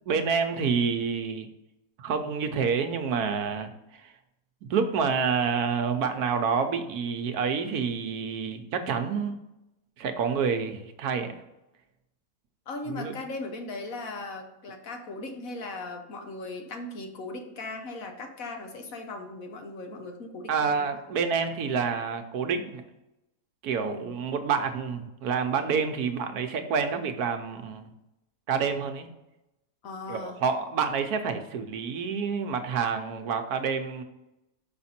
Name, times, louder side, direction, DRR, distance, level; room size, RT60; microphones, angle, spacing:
voice 1, 0.1-1.5 2.0-4.1 4.6-9.4 10.0-11.4 12.9-13.2 20.5-22.8 23.6-27.9 28.5-29.1 30.1-34.0, right 6 dB, 75° right, 7 dB, 1.2 m, -28 dB
voice 2, 12.7-20.9 23.8-24.1 29.8-30.4, left 2 dB, 65° left, 4 dB, 1.3 m, -38 dB
5.8 x 5.2 x 4.2 m, 0.91 s
omnidirectional pair, 1.7 m